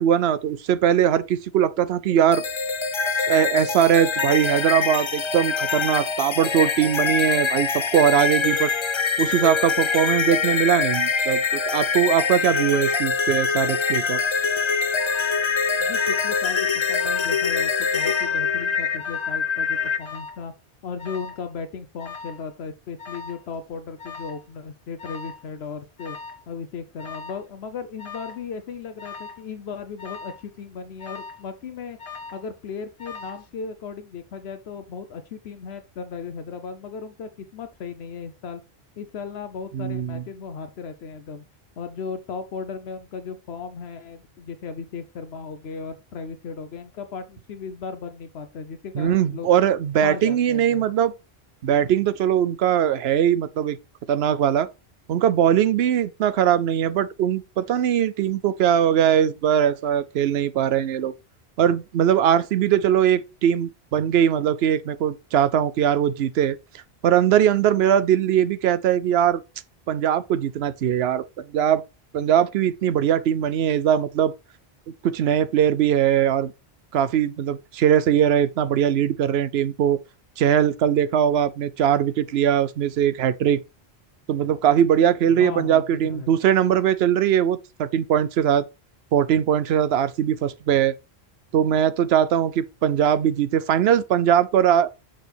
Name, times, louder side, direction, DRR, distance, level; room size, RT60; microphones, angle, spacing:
voice 1, 0.0-2.4 3.3-8.7 9.2-14.2 39.7-40.2 48.9-51.1 51.6-53.8 54.1-54.7 55.1-61.1 61.6-66.6 67.0-69.4 69.9-71.8 72.1-74.3 75.0-76.5 76.9-80.0 80.4-83.6 84.3-88.7 89.1-90.9 91.5-94.9, right 9 dB, 75° right, 0.8 m, -21 dB
sound 1, 2.3-20.0, left 5 dB, 35° left, 0.6 m, -24 dB
Alarm, 15.0-15.4 16.0-16.5 16.7-17.4 18.0-18.4 19.0-19.4 20.0-20.4 21.0-21.4 22.0-22.4 23.0-23.4 24.0-24.4 25.0-25.4 26.0-26.4 27.0-27.4 28.0-28.4 29.0-29.4 30.0-30.4 31.0-31.5 32.0-32.5 33.0-33.5, left 5 dB, 55° left, 1.7 m, -39 dB
voice 2, 15.8-20.5 20.8-26.2 26.5-32.0 32.3-38.6 39.0-41.4 41.8-49.5 50.0-50.9 85.3-86.3, left 5 dB, 75° left, 1.0 m, -36 dB
6.5 x 6.2 x 3.3 m
omnidirectional pair, 1.1 m